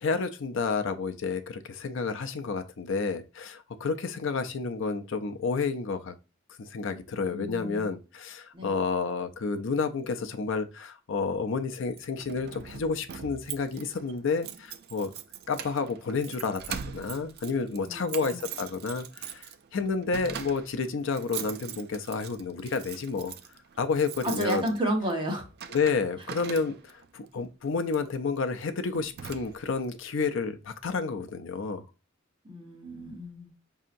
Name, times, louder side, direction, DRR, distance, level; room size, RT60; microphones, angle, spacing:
voice 1, 0.0-6.1 6.6-15.1 15.5-23.3 23.8-24.7 25.7-31.8, left 4 dB, 65° left, 0.5 m, -30 dB
voice 2, 7.3-7.9 8.5-8.8 17.9-18.4 24.2-25.4 32.4-33.5, right 1 dB, 25° right, 1.0 m, -32 dB
Keys jangling, 11.7-27.1 27.9-28.1 28.6-28.7 28.9-29.8, right 8 dB, 50° right, 0.3 m, -42 dB
5.4 x 2.8 x 2.5 m
head